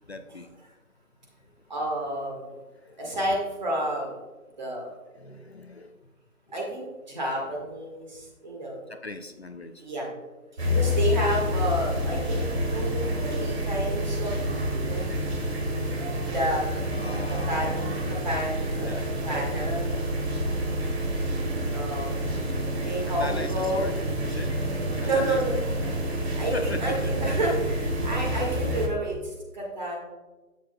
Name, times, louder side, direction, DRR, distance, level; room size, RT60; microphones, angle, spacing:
voice 1, 0.1-0.5 2.8-3.2 4.8-6.0 8.9-9.9 11.1-11.5 16.9-17.8 18.1-18.2 18.8-19.1 22.6-22.7 23.1-24.0 24.2-24.6 25.1-25.4 25.7-25.8 26.5-27.1, left 2 dB, 50° left, 7 dB, 0.6 m, -39 dB
voice 2, 1.7-2.5 3.0-4.2 4.6-4.9 6.5-8.8 9.8-10.1 10.7-12.4 12.7-14.3 14.7-15.1 16.3-16.8 17.3-17.8 18.1-19.0 19.2-19.9 21.7-22.2 22.7-23.8 25.0-25.5 26.4-30.0, right 1 dB, 30° right, -2 dB, 1.8 m, -30 dB
sound 1, 10.6-28.9, equal, 45° right, 1.8 m, -28 dB
11.5 x 8.0 x 2.3 m, 1.2 s
hypercardioid pair, 170°, 43 cm